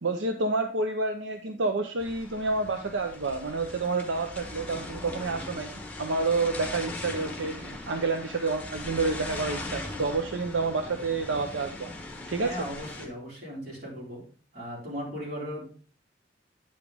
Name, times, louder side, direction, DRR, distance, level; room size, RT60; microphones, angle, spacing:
voice 1, 0.0-11.9 12.3-12.5, right 3 dB, 85° right, 5 dB, 0.7 m, -29 dB
sound 1, 2.0-13.1, left 2 dB, 10° left, 1.3 m, -39 dB
voice 2, 12.4-14.2 14.5-15.6, equal, 50° right, -5 dB, 4.1 m, -37 dB
9.1 x 5.1 x 3.5 m, 0.41 s
head